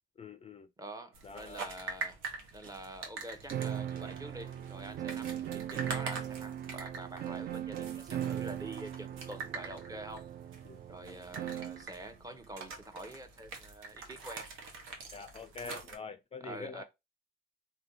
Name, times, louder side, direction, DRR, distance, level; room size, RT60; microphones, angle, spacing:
voice 1, 0.2-0.7 1.2-1.6 10.7-10.8 15.1-16.8, left 5 dB, 30° left, 0.4 m, -45 dB
voice 2, 0.8-2.2 2.5-10.3 10.9-14.5 16.4-16.8, right 1 dB, 20° right, 0.7 m, -46 dB
sound 1, 1.1-15.9, right 4 dB, 85° right, 0.9 m, -45 dB
sound 2, 3.5-11.9, right 10 dB, 50° right, 0.4 m, -39 dB
3.3 x 2.7 x 2.6 m
cardioid pair, 90°, 20 cm